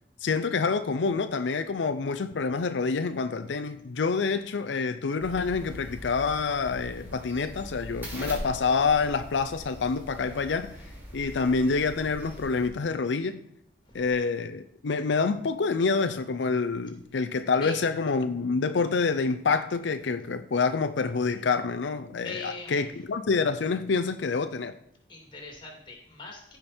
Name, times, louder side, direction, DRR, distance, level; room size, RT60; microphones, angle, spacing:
voice 1, 0.2-10.8 11.1-13.4 13.9-24.7, left 4 dB, 90° left, 9 dB, 0.5 m, -27 dB
sound 1, 5.2-12.7, equal, 10° right, 2.8 m, -42 dB
voice 2, 22.2-23.0 25.1-26.6, left 3 dB, 30° left, 1 dB, 2.5 m, -41 dB
15.5 x 5.2 x 4.3 m, 0.74 s
head